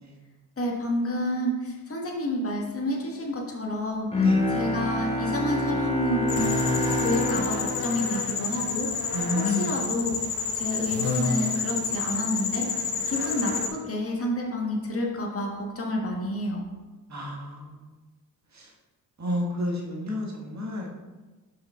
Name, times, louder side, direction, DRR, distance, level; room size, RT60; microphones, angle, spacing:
voice 1, 0.6-6.7 6.9-10.2 10.5-16.6, left 1 dB, 30° left, -1 dB, 1.5 m, -29 dB
Bowed string instrument, 4.1-9.3, left 1 dB, 15° left, 1.4 m, -27 dB
sound 1, 6.3-13.7, left 5 dB, 55° left, 0.9 m, -29 dB
voice 2, 9.1-9.7 17.1-17.6 19.2-20.9, left 1 dB, 40° right, -1 dB, 1.6 m, -30 dB
5.6 x 5.2 x 3.7 m, 1.2 s
hypercardioid pair, 40°, 44 cm